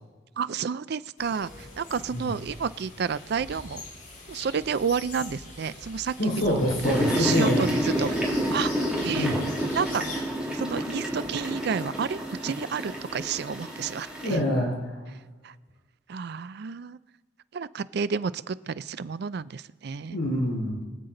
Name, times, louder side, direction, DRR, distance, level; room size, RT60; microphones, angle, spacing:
voice 1, 0.4-3.8 4.3-6.1 6.5-6.6 7.2-9.3 9.7-14.4 15.4-15.5 16.1-17.0 17.5-20.2, right 6 dB, 60° right, 16 dB, 0.4 m, -31 dB
sound 1, 1.2-10.2, left 2 dB, 40° left, 4.0 m, -42 dB
voice 2, 6.2-7.6 9.1-9.4 14.2-15.0 20.1-20.8, left 1 dB, 90° left, -2 dB, 4.6 m, -26 dB
sound 2, 6.8-14.3, equal, 5° right, 2.3 m, -29 dB
23.5 x 8.1 x 3.9 m, 1.3 s
head